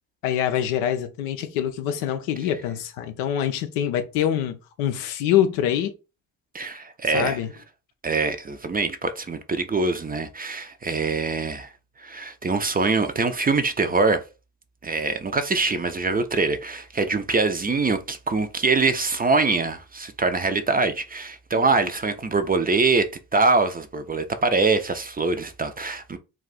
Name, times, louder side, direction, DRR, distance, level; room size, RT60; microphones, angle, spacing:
voice 1, 0.2-5.9 7.1-7.5 21.5-21.6, left 10 dB, 85° left, 0.5 m, -25 dB
voice 2, 6.5-7.4 8.0-11.7 12.0-14.2 14.8-26.2, right 3 dB, 20° right, 0.4 m, -24 dB
2.4 x 2.3 x 3.9 m
hypercardioid pair, 40°, 46 cm